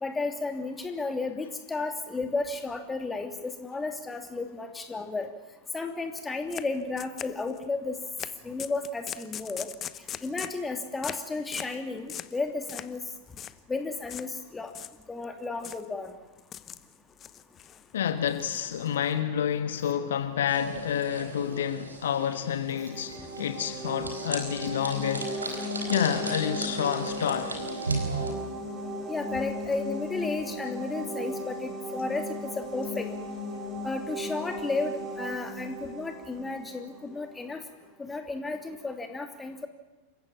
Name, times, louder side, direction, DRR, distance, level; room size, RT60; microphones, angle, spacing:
voice 1, 0.0-5.3 5.7-8.0 8.4-9.7 10.2-13.0 13.7-14.7 15.1-16.1 29.1-33.1 33.8-37.6 38.0-39.7, left 3 dB, 10° left, 2.8 m, -33 dB
sound 1, 6.5-6.6 7.0-7.6 8.2-8.3 8.6-10.6 11.0-11.2 11.5-11.7 12.1-12.4 12.7-13.0 13.3-13.5 14.1-14.3 14.7-15.2 15.6-15.8 16.4-16.8 17.2-17.8 18.3-19.1, left 10 dB, 25° left, 0.9 m, -39 dB
voice 2, 17.9-27.6, left 9 dB, 60° left, 1.3 m, -29 dB
sound 2, 20.5-28.3, right 2 dB, 80° right, 4.3 m, -36 dB
sound 3, 22.7-37.3, equal, 25° right, 5.6 m, -37 dB
27.5 x 15.5 x 8.9 m
figure-of-eight pair, 90°, 0 cm